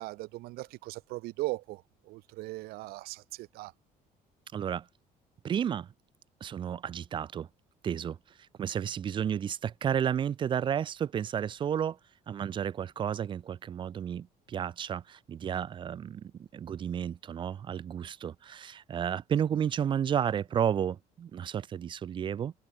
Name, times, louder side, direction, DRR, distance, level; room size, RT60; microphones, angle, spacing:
voice 1, 0.0-3.7 19.5-19.6, right 20 dB, 85° right, 4.8 m, -39 dB
voice 2, 4.5-4.8 5.4-5.9 6.4-7.5 7.8-8.2 8.6-12.0 12.3-16.2 16.5-22.5, right 8 dB, 30° right, 0.7 m, -32 dB
cardioid pair, 160°, 15 cm